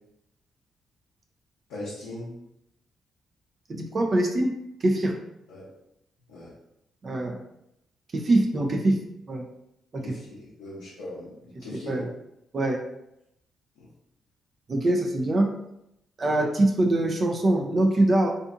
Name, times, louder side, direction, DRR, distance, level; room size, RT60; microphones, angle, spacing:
voice 1, 1.7-2.4 5.5-5.7 6.3-6.5 10.0-12.1 13.8-13.9, left 1 dB, 85° left, -10 dB, 0.7 m, -39 dB
voice 2, 3.7-5.2 7.0-7.4 8.1-9.0 9.3-9.5 9.9-10.2 11.6-12.1 12.5-12.8 14.7-15.5 16.2-18.3, right 1 dB, 45° right, 3 dB, 0.4 m, -24 dB
2.5 x 2.5 x 2.4 m, 0.81 s
hypercardioid pair, 50°, 0 cm